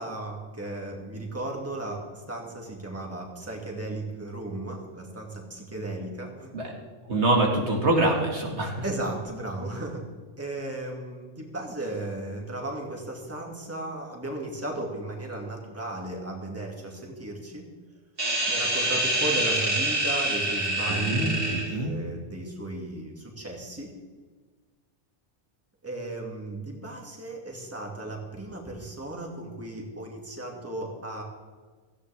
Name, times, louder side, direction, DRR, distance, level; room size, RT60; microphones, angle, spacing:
voice 1, 0.0-6.7 8.8-10.0 10.4-17.6 18.5-23.9 25.8-31.2, right 2 dB, 10° right, 0 dB, 2.2 m, -35 dB
voice 2, 7.1-8.7 20.9-21.9, right 2 dB, 65° right, 0 dB, 2.4 m, -25 dB
sound 1, 18.2-21.7, right 1 dB, 50° right, 3.5 m, -26 dB
17.0 x 14.5 x 3.5 m, 1.4 s
omnidirectional pair, 1.2 m